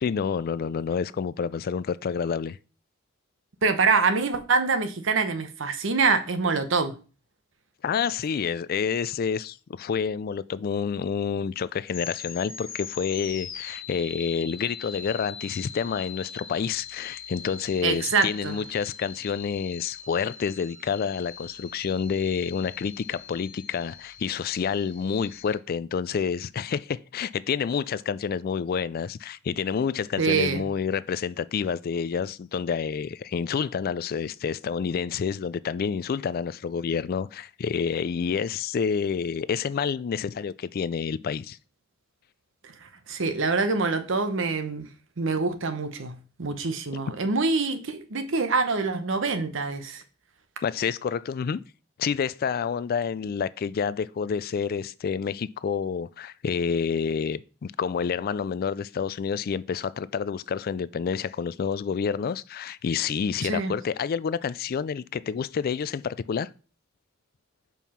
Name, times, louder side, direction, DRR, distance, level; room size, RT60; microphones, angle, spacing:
voice 1, 0.0-2.6 7.8-41.6 50.6-51.6 52.0-66.5, left 6 dB, 50° left, 0.3 m, -28 dB
voice 2, 3.6-7.0 17.8-18.6 30.2-30.6 43.1-44.9 45.2-50.0 63.4-63.7, right 4 dB, 65° right, 0.9 m, -25 dB
sound 1, 11.9-25.6, left 6 dB, 65° left, 1.2 m, -42 dB
5.3 x 4.7 x 5.6 m
head